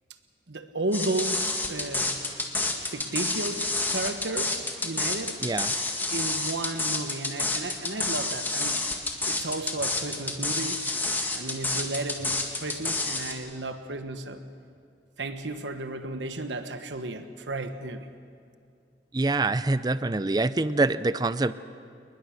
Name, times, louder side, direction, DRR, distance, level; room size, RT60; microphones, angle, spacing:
voice 1, 0.5-2.2 2.9-5.4 6.1-8.8 9.3-10.8 11.3-14.4 15.2-18.1, right 2 dB, 90° right, 1.3 m, -33 dB
sound 1, 0.9-13.3, left 2 dB, 10° left, 1.9 m, -29 dB
voice 2, 19.1-21.5, right 2 dB, 25° right, 0.5 m, -25 dB
29.5 x 20.0 x 6.5 m
head